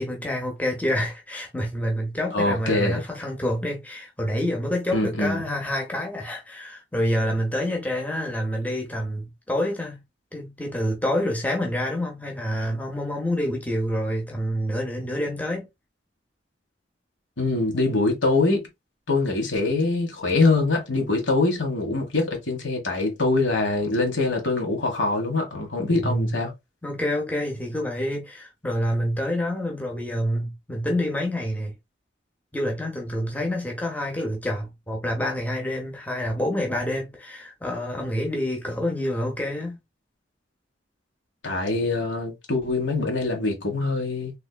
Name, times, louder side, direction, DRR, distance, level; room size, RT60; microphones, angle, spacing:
voice 1, 0.0-10.0 10.3-15.7 25.9-26.4 26.8-31.7 32.5-39.8, left 1 dB, 10° left, 0.8 m, -27 dB
voice 2, 2.3-3.0 4.9-5.4 17.4-18.6 19.1-26.5 41.4-44.3, left 3 dB, 80° left, 1.6 m, -24 dB
3.4 x 3.2 x 2.3 m
head